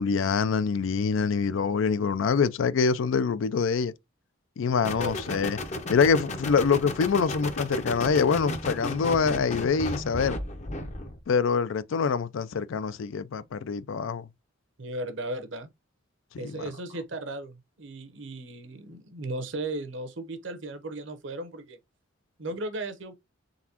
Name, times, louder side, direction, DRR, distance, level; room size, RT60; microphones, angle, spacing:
voice 1, 0.0-3.9 4.6-5.6 5.9-10.4 11.3-14.3 16.3-16.6, left 5 dB, 75° left, 0.4 m, -25 dB
sound 1, 4.8-11.2, left 1 dB, 35° left, 0.6 m, -34 dB
voice 2, 4.8-5.5 14.8-15.7 16.4-21.8 22.4-23.1, right 2 dB, 65° right, 0.9 m, -36 dB
4.0 x 3.5 x 2.8 m
head